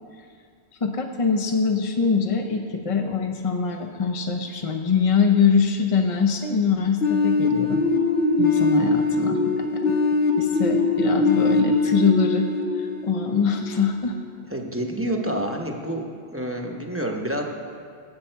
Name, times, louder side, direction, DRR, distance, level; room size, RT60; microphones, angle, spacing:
voice 1, 0.8-7.8 8.4-10.0 10.4-12.5 12.7-14.2, left 5 dB, 40° left, 3 dB, 0.7 m, -23 dB
sound 1, 7.0-13.8, left 3 dB, 75° left, 1.2 m, -22 dB
voice 2, 14.5-17.4, right 1 dB, 15° right, 1 dB, 0.9 m, -28 dB
15.5 x 8.4 x 4.5 m, 2.2 s
omnidirectional pair, 1.0 m